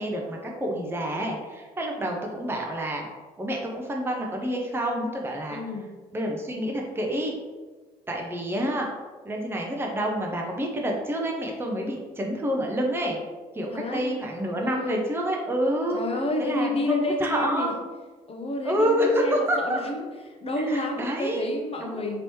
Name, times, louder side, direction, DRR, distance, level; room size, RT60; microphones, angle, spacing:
voice 1, 0.0-3.1 3.4-5.6 6.1-7.4 8.1-8.9 9.2-13.2 13.5-16.0 16.4-17.7 18.6-19.8 20.7-21.4 21.8-22.0, equal, 10° right, 0 dB, 0.6 m, -28 dB
voice 2, 5.5-5.9 13.7-14.2 14.5-15.0 15.9-17.7 18.3-20.0 20.3-22.2, left 2 dB, 30° left, 2 dB, 0.7 m, -29 dB
3.0 x 2.9 x 3.1 m, 1.3 s
hypercardioid pair, 50°, 19 cm